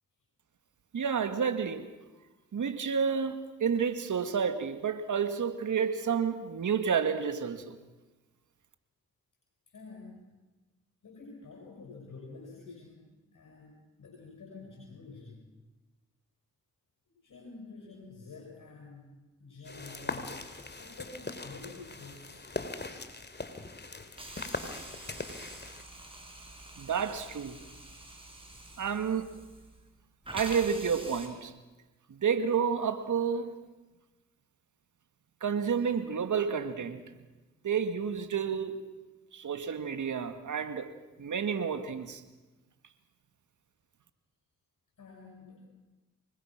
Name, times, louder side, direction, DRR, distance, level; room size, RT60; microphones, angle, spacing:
voice 1, 0.9-1.9 2.5-7.8 26.8-27.6 28.8-29.3 30.3-31.5 32.1-33.6 35.4-37.0 37.6-38.8 39.3-40.9 41.2-42.2, right 6 dB, 70° right, 2.1 m, -30 dB
voice 2, 9.7-10.3 11.0-13.7 14.0-15.4 17.2-19.1 19.4-20.3 20.8-22.5 23.7-23.8 45.0-45.7, left 3 dB, 70° left, 6.4 m, -48 dB
sound 1, 19.6-25.8, left 3 dB, 35° left, 2.7 m, -40 dB
Hiss, 24.2-29.9 30.2-31.3, right 1 dB, 15° right, 6.7 m, -46 dB
25.0 x 21.0 x 6.2 m
supercardioid pair, 40°, 32 cm